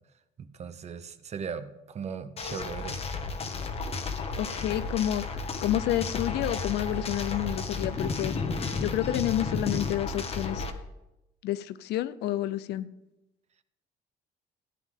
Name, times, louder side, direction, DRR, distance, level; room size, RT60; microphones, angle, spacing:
voice 1, 0.4-3.0, right 6 dB, 40° right, 11 dB, 0.8 m, -38 dB
sound 1, 2.4-10.7, left 4 dB, 35° left, 1.2 m, -33 dB
voice 2, 4.4-5.2 5.6-8.3 8.8-10.7 11.4-12.9, left 13 dB, 75° left, 16 dB, 0.6 m, -29 dB
14.0 x 9.5 x 3.6 m, 0.93 s
cardioid pair, 110°, 17 cm